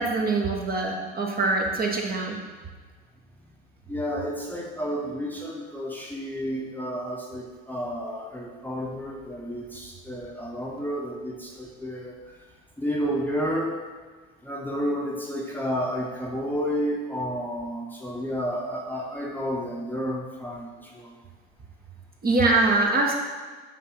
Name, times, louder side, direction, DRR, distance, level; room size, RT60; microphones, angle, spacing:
voice 1, 0.0-2.4 22.2-23.1, right 3 dB, 30° right, 0 dB, 1.1 m, -23 dB
voice 2, 3.9-12.2 12.8-13.8 14.4-21.2, equal, 5° left, -3 dB, 1.0 m, -31 dB
7.4 x 2.7 x 5.8 m, 1.5 s
hypercardioid pair, 80°, 31 cm